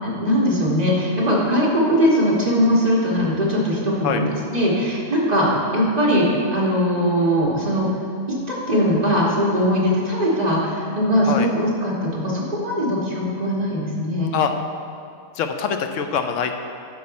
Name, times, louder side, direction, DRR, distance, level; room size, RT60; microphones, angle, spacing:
voice 1, 0.0-4.2 4.5-7.9 8.5-14.3, equal, 25° right, -5 dB, 1.6 m, -20 dB
voice 2, 15.4-16.5, left 7 dB, 65° left, 6 dB, 0.9 m, -23 dB
12.0 x 4.7 x 4.1 m, 2.4 s
omnidirectional pair, 1.6 m